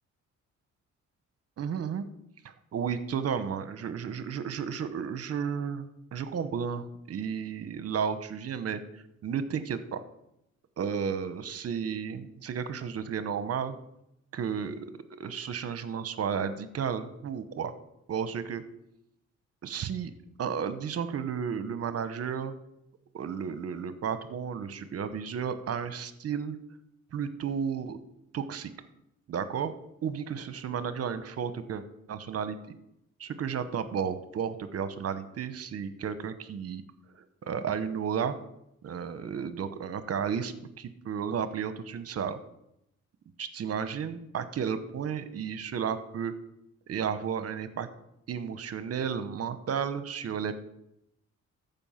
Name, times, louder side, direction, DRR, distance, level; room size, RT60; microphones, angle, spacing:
voice 1, 1.6-2.0 2.4-8.8 9.2-10.0 10.8-13.8 14.3-14.8 15.2-17.7 18.1-18.6 19.6-20.1 20.4-22.5 23.1-26.6 27.1-28.0 28.3-28.7 29.3-29.7 30.0-32.8 33.2-36.8 37.2-38.4 38.8-42.4 43.4-46.3 46.9-47.9 48.3-50.6, right 7 dB, 50° right, 12 dB, 1.0 m, -33 dB
14.0 x 5.5 x 5.7 m, 0.81 s
cardioid pair, 90°, 30 cm